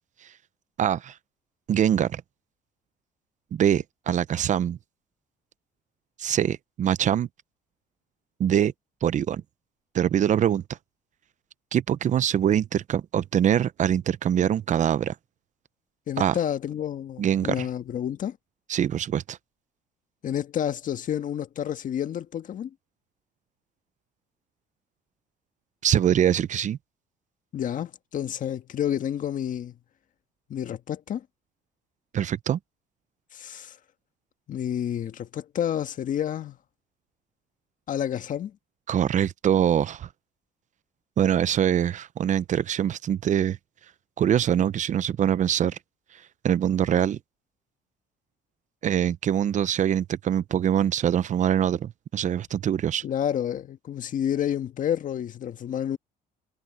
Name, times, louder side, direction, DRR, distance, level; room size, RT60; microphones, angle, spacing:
voice 1, 0.8-1.1 1.7-2.2 3.5-4.8 6.2-7.3 8.4-8.7 9.0-9.4 9.9-10.6 11.7-15.1 16.2-16.4 17.2-17.7 18.7-19.4 25.8-26.8 32.1-32.6 38.9-40.1 41.2-43.6 44.2-45.8 46.4-47.2 48.8-53.0, right 9 dB, 45° right, 0.7 m, -23 dB
voice 2, 16.1-18.4 20.2-22.7 27.5-29.7 30.5-31.3 33.3-33.8 34.5-36.6 37.9-38.6 53.0-56.0, left 10 dB, 50° left, 1.6 m, -29 dB
cardioid pair, 110°, 17 cm